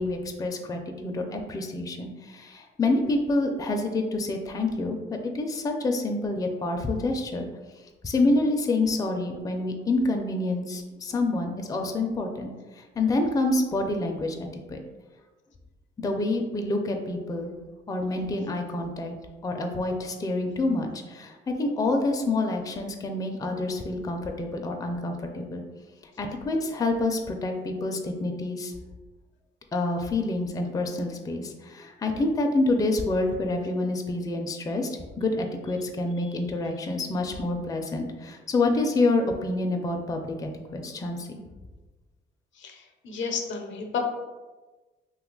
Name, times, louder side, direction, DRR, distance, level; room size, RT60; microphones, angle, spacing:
voice 1, 0.0-7.5 8.0-12.5 12.8-14.8 16.0-17.5 17.9-19.1 19.4-25.6 26.2-28.7 29.7-41.4, left 2 dB, 20° left, 3 dB, 0.4 m, -27 dB
voice 2, 42.6-44.0, left 5 dB, 70° left, 3 dB, 0.6 m, -32 dB
2.8 x 2.3 x 3.7 m, 1.2 s
cardioid pair, 90°, 20 cm